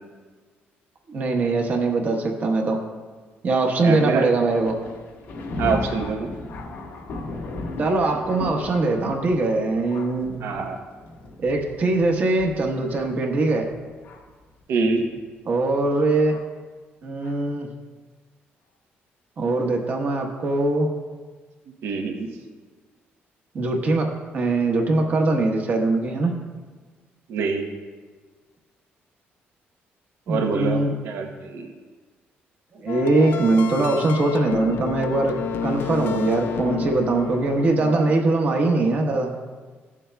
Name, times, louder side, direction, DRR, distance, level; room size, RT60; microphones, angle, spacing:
voice 1, 1.1-2.8 3.4-4.8 7.8-10.4 11.4-13.7 15.5-16.4 17.0-17.7 19.4-20.9 23.5-26.4 30.3-30.9 32.7-35.3 35.6-39.3, right 2 dB, 45° right, 2 dB, 1.2 m, -22 dB
voice 2, 3.8-4.2 5.6-6.3 10.4-10.8 14.7-15.1 21.8-22.3 27.3-27.6 30.3-31.7, right 4 dB, 75° right, 3 dB, 1.0 m, -25 dB
Thunder, 4.5-14.4 15.2-15.3 16.3-16.5 17.2-17.4, left 2 dB, 80° left, 1.3 m, -36 dB
sound 1, 32.9-38.1, left 7 dB, 60° left, 0.4 m, -30 dB
15.5 x 7.2 x 2.3 m, 1.4 s
cardioid pair, 150°, 4 cm